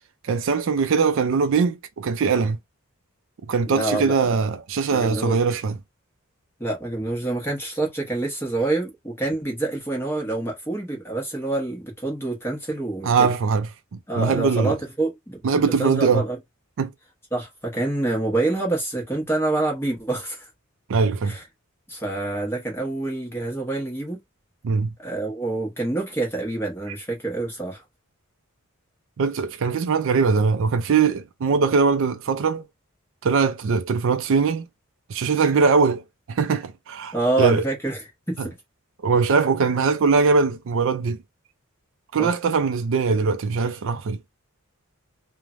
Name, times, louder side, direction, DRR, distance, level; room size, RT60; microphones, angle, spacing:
voice 1, 0.2-2.6 3.5-5.8 13.0-13.7 14.2-14.7 15.4-16.2 16.8-16.9 20.9-21.3 24.6-24.9 29.2-32.6 33.2-34.6 35.1-36.0 36.3-37.6 38.4-38.5 39.0-41.2 42.1-44.2, right 5 dB, 60° right, 0.4 m, -21 dB
voice 2, 3.7-4.3 4.9-5.4 6.6-13.3 14.1-16.4 17.3-20.5 21.2-21.5 21.9-24.2 25.0-27.8 37.1-38.5 42.2-42.3, right 2 dB, 10° left, 0.8 m, -27 dB
3.1 x 2.1 x 2.4 m
head